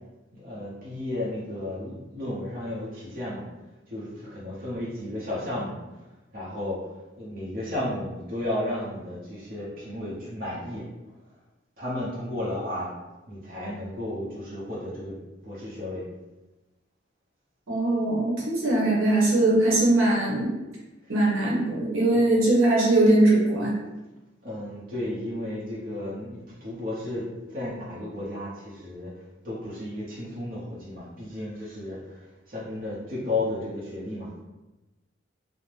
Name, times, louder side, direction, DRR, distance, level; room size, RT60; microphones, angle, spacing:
voice 1, 0.3-3.4 3.9-5.8 6.3-10.9 11.8-12.9 13.3-15.2 15.4-16.0 21.0-21.2 22.0-22.2 24.4-29.1 29.4-34.3, left 1 dB, 45° right, -7 dB, 0.8 m, -33 dB
voice 2, 17.7-20.6 21.1-23.8, right 2 dB, 90° right, -5 dB, 0.9 m, -21 dB
2.7 x 2.0 x 3.2 m, 1.1 s
head